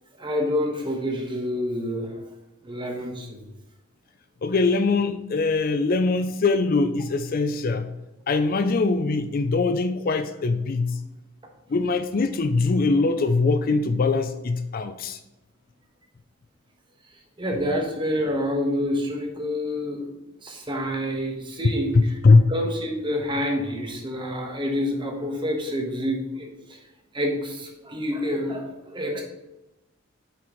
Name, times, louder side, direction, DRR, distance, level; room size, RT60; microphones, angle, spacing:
voice 1, 0.1-2.2 2.6-3.4 17.4-20.1 20.4-22.2 22.5-26.8 27.1-29.2, equal, 25° right, 2 dB, 1.2 m, -28 dB
voice 2, 4.4-7.9 8.3-11.0 11.7-15.2 22.0-22.5, left 3 dB, 45° left, 9 dB, 0.4 m, -22 dB
8.5 x 6.1 x 3.1 m, 0.99 s
head